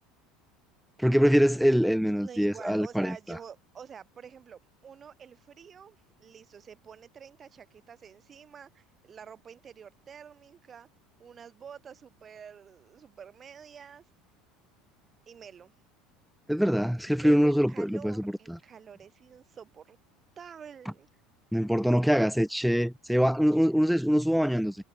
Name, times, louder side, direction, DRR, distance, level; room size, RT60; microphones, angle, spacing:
voice 1, 1.0-3.4 16.5-18.6 21.5-24.8, equal, ahead, 0.4 m, -24 dB
voice 2, 2.2-10.9 11.2-14.0 15.3-15.7 17.2-20.0 20.4-21.1, right 7 dB, 35° right, 7.3 m, -48 dB
hypercardioid pair, 75°, 0 cm